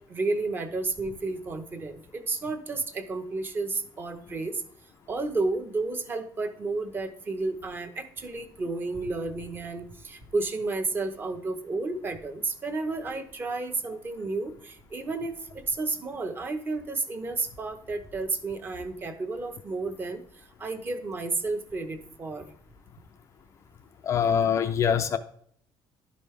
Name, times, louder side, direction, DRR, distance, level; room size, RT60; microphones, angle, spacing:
voice 1, 0.1-4.6 5.1-20.2 20.6-22.5, right 3 dB, 25° right, 0.8 m, -32 dB
voice 2, 24.0-25.2, left 7 dB, 35° left, 0.4 m, -24 dB
11.5 x 5.3 x 3.2 m
cardioid pair, 170°, 8 cm